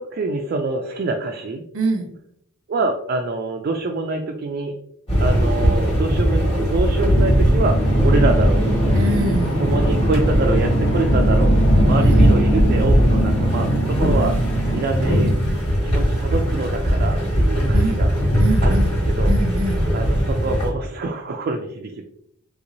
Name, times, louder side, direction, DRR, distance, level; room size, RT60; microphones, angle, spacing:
voice 1, 0.0-1.6 2.7-4.7 5.2-7.8 8.0-8.7 9.6-11.6 11.8-14.4 14.7-15.3 15.8-18.1 18.6-19.3 19.9-22.0, right 3 dB, 50° right, 2 dB, 0.3 m, -25 dB
voice 2, 1.7-2.1 8.9-9.7 12.0-12.4 17.7-18.0 18.4-18.9 19.3-19.9, right 1 dB, 90° right, 4 dB, 0.6 m, -24 dB
sound 1, 5.1-20.7, equal, 25° left, 1.3 m, -19 dB
sound 2, 7.0-15.4, right 1 dB, 75° left, 0.9 m, -21 dB
3.3 x 3.0 x 2.5 m, 0.70 s
head